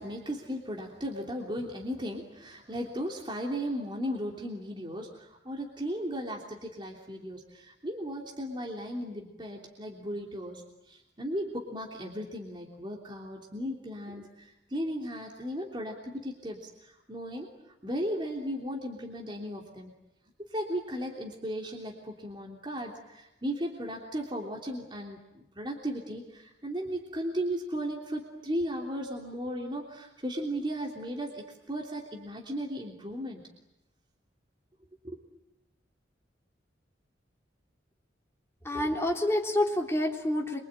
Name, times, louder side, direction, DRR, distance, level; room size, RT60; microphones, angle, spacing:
voice 1, 0.0-10.6 10.9-17.5 17.8-19.9 20.5-33.4 35.0-35.2, equal, 25° right, 0 dB, 3.2 m, -36 dB
voice 2, 38.6-40.6, left 1 dB, 15° left, 0 dB, 3.6 m, -28 dB
27.0 x 25.0 x 9.0 m, 0.90 s
head